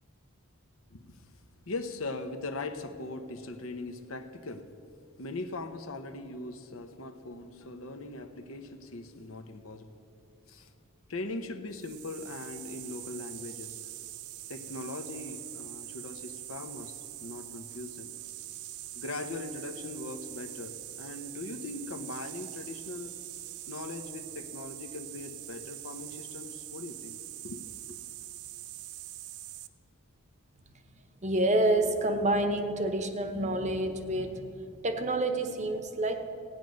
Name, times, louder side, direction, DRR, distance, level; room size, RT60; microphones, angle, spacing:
voice 1, 0.9-1.3 1.7-4.7 5.2-9.9 10.5-10.7 11.1-13.8 14.5-18.1 18.9-23.2 23.7-28.0, left 2 dB, 60° left, 8 dB, 0.9 m, -40 dB
sound 1, 11.7-29.7, right 14 dB, 80° right, 0.6 m, -43 dB
voice 2, 31.2-36.3, right 1 dB, 30° right, 8 dB, 0.9 m, -28 dB
16.0 x 9.4 x 6.4 m, 2.7 s
head